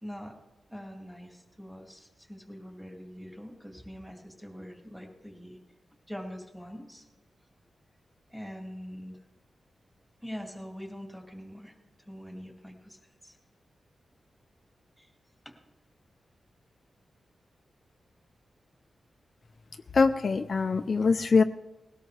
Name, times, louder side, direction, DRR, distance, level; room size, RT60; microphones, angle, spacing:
voice 1, 0.0-0.3 0.7-5.6 6.1-7.1 8.3-9.2 10.2-11.7 12.0-13.0 13.2-13.4 15.0-15.1 15.4-15.5, equal, ahead, 1 dB, 2.3 m, -43 dB
voice 2, 19.9-21.4, left 4 dB, 50° left, 7 dB, 0.5 m, -23 dB
20.0 x 17.0 x 3.4 m, 1.1 s
wide cardioid pair, 125°, 0 cm